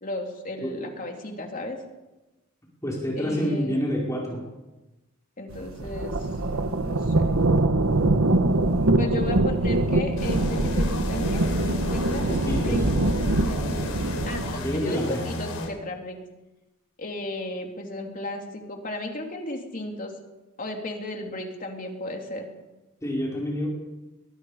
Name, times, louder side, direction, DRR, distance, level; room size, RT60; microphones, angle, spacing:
voice 1, 0.0-1.8 3.2-3.8 5.4-6.3 6.8-7.2 9.0-11.5 11.7-12.8 13.4-14.0 14.3-16.2 17.0-20.1 20.6-22.5, left 1 dB, 40° left, 2 dB, 3.3 m, -34 dB
voice 2, 2.8-4.4 12.2-12.8 14.6-15.2 23.0-23.7, equal, 15° left, -4 dB, 5.0 m, -28 dB
sound 1, 5.5-14.5, right 2 dB, 90° right, 1.3 m, -23 dB
sound 2, 10.2-15.7, left 1 dB, 85° left, 4.4 m, -34 dB
22.5 x 22.5 x 5.1 m, 1.1 s
head